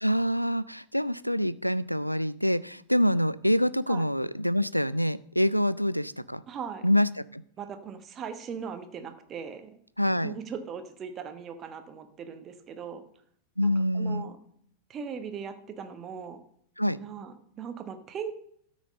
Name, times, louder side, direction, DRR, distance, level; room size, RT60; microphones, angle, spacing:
voice 1, 0.0-6.4 6.8-7.4 10.0-10.3 13.6-14.3 16.8-17.0, equal, 90° left, 18 dB, 0.4 m, -26 dB
voice 2, 6.5-6.9 7.6-9.7 10.1-13.0 13.6-14.4 14.9-16.4 16.9-18.3, right 7 dB, 30° right, 8 dB, 1.2 m, -39 dB
13.0 x 6.3 x 5.2 m, 0.66 s
figure-of-eight pair, 90°, 0 cm